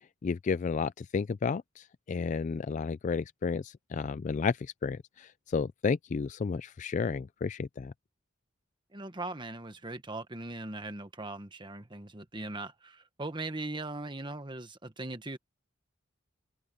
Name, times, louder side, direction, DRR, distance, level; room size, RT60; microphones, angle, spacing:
voice 1, 0.2-7.9, left 5 dB, 40° left, 0.3 m, -32 dB
voice 2, 8.9-15.4, right 2 dB, 25° right, 1.3 m, -39 dB
open air
head